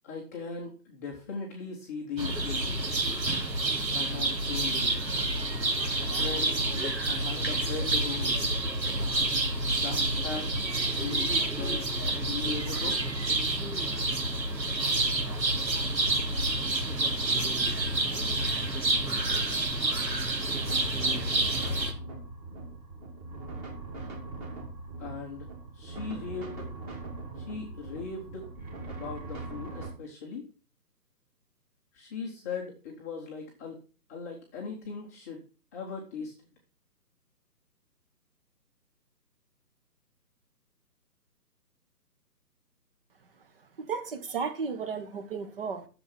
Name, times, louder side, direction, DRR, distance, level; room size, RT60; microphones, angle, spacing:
voice 1, 0.0-2.8 3.9-5.0 6.1-8.4 9.7-10.5 10.9-13.0 25.0-25.5 25.7-26.7 27.4-28.4 28.8-30.5 31.9-33.8 34.1-35.4 35.7-36.5, left 5 dB, 10° left, 0.9 m, -39 dB
sound 1, 2.2-21.9, right 2 dB, 80° right, 3.6 m, -28 dB
sound 2, 20.5-29.9, right 3 dB, 15° right, 2.1 m, -41 dB
voice 2, 43.8-45.9, right 5 dB, 35° right, 1.5 m, -34 dB
11.0 x 7.0 x 6.0 m
hypercardioid pair, 155°, 50 cm